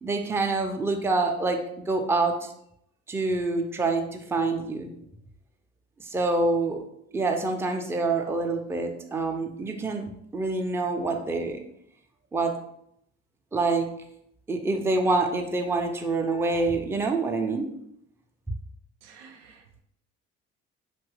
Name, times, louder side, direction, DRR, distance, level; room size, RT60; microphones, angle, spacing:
voice 1, 0.0-1.6 1.9-2.5 3.1-4.9 6.0-6.8 7.1-10.1 10.3-11.6 12.3-12.6 13.5-13.9 14.5-17.7, right 3 dB, 10° right, 4 dB, 0.4 m, -26 dB
voice 2, 19.0-19.8, right 6 dB, 85° right, 4 dB, 0.5 m, -52 dB
2.8 x 2.3 x 3.1 m, 0.74 s
hypercardioid pair, 55°, 33 cm